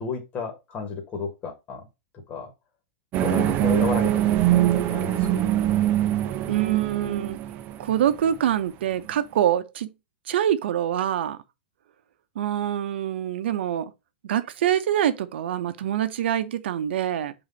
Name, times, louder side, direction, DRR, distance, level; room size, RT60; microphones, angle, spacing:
voice 1, 0.0-1.8 2.3-2.5 3.2-5.5, left 5 dB, 25° left, 1.5 m, -32 dB
sound 1, 3.1-8.3, right 12 dB, 35° right, 0.7 m, -23 dB
voice 2, 6.5-7.4 7.8-9.9 10.3-11.4 12.4-13.9 14.2-17.3, right 10 dB, 75° right, 0.9 m, -25 dB
5.1 x 3.9 x 5.4 m
supercardioid pair, 145°, 6 cm